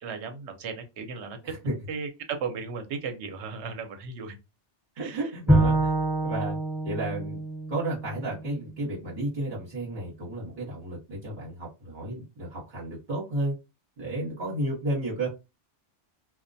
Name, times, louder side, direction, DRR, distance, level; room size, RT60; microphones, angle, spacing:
voice 1, 0.0-1.4 1.9-4.4 5.0-5.2, right 5 dB, 75° right, 6 dB, 0.9 m, -35 dB
voice 2, 1.4-1.7 5.0-5.9 6.2-6.6 6.8-7.4 7.7-13.5 14.0-15.3, right 1 dB, 45° right, -6 dB, 1.1 m, -32 dB
Bowed string instrument, 5.5-8.7, right 2 dB, ahead, 1.0 m, -26 dB
2.3 x 2.1 x 2.6 m, 0.25 s
omnidirectional pair, 1.2 m